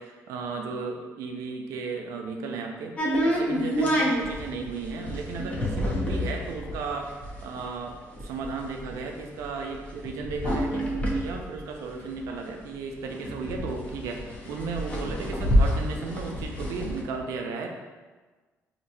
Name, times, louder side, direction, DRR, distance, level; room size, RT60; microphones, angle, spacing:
voice 1, 0.0-3.0 3.2-7.1 7.4-8.0 8.2-17.7, right 4 dB, 90° right, 3 dB, 0.5 m, -35 dB
sound 1, 3.0-12.5 12.8-12.9 13.1-17.0, equal, 25° left, 0.7 m, -28 dB
4.4 x 2.8 x 2.7 m, 1.3 s
cardioid pair, 145°, 5 cm